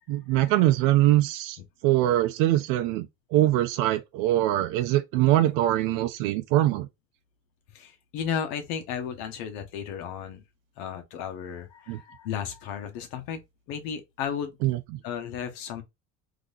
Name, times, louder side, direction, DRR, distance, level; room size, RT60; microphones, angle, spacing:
voice 1, 0.1-1.6 1.8-6.9 11.9-12.0 14.6-14.8, right 14 dB, 80° right, 0.6 m, -23 dB
voice 2, 7.7-10.4 10.8-13.4 13.7-14.6 15.0-15.8, left 8 dB, 85° left, 1.2 m, -34 dB
3.8 x 2.9 x 2.4 m
cardioid pair, 180°, 33 cm